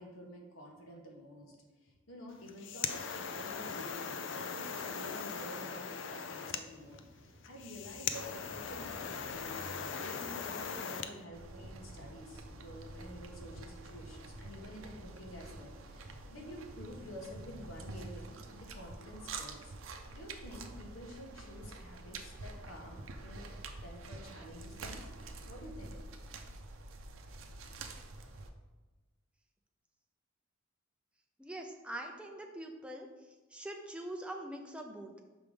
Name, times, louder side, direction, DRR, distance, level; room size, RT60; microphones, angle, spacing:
voice 1, 0.0-1.6 1.8-9.6 9.9-19.7 20.1-25.0 25.5-26.0, equal, 80° left, 0 dB, 1.3 m, -50 dB
sound 1, 2.3-11.1, left 6 dB, 65° left, 0.4 m, -40 dB
sound 2, 6.3-18.4, equal, 50° right, 1.1 m, -55 dB
sound 3, 11.3-28.5, right 3 dB, 80° right, 0.6 m, -47 dB
voice 2, 31.4-33.1 33.5-35.2, right 1 dB, 5° right, 2 dB, 0.5 m, -43 dB
6.0 x 3.6 x 5.0 m, 1.2 s
head